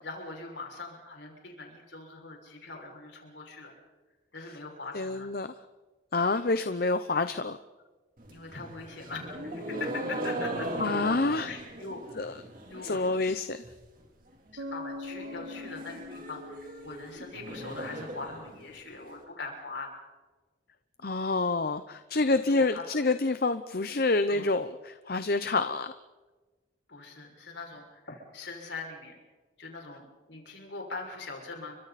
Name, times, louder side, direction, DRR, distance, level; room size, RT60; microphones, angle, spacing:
voice 1, 0.0-3.7 4.3-5.3 8.3-10.7 11.5-12.0 12.7-13.4 14.5-19.9 22.5-22.9 24.3-24.5 26.9-29.2 29.6-31.8, left 3 dB, 65° left, 1 dB, 6.3 m, -42 dB
voice 2, 4.9-5.5 6.1-7.6 10.8-11.5 12.2-12.3 12.8-13.6 21.0-25.9, left 3 dB, 50° left, 10 dB, 0.8 m, -27 dB
sound 1, 8.2-13.2 13.5-14.0 14.3-14.4 14.7-14.8 15.1-19.1, right 1 dB, 45° right, 3.5 m, -38 dB
Bass guitar, 14.6-18.2, left 2 dB, 75° right, 2.3 m, -43 dB
30.0 x 24.5 x 4.3 m, 1.2 s
head